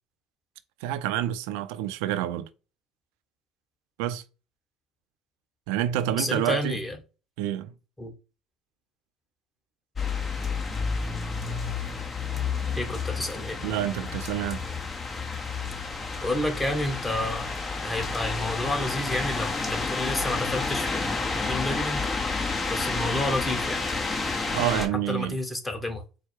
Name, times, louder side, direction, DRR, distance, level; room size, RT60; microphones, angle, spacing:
voice 1, 0.8-2.5 4.0-4.2 5.7-6.8 7.4-7.7 13.6-14.6 24.5-25.4, right 12 dB, 85° right, 0.5 m, -28 dB
voice 2, 6.1-7.0 8.0-8.1 12.8-13.6 16.2-22.1 22.7-23.8 24.6-26.0, left 1 dB, 15° left, 1.3 m, -30 dB
sound 1, 10.0-24.9, left 4 dB, 30° left, 1.0 m, -30 dB
4.6 x 2.1 x 4.6 m
supercardioid pair, 80°, 0 cm